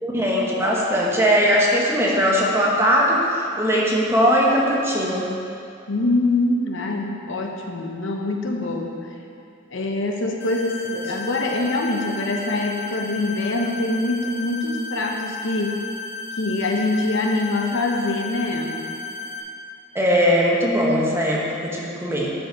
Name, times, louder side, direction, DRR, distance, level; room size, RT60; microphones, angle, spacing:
voice 1, 0.0-5.3 19.9-22.3, equal, 15° right, -3 dB, 1.1 m, -20 dB
voice 2, 5.9-8.9 9.7-15.9 16.4-18.9, left 2 dB, 70° left, 1 dB, 0.9 m, -24 dB
sound 1, 10.4-19.4, left 4 dB, 50° left, 1.3 m, -34 dB
11.5 x 5.3 x 4.7 m, 2.5 s
head